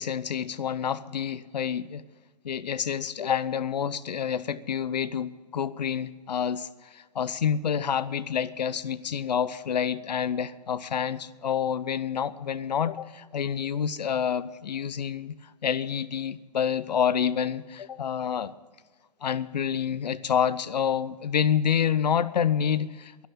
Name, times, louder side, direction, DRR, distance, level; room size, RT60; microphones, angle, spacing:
voice 1, 0.0-2.0 2.4-15.3 15.6-18.5 19.2-23.3, left 8 dB, 80° left, 0.8 m, -28 dB
11.5 x 11.5 x 8.8 m
hypercardioid pair, 125°, 21 cm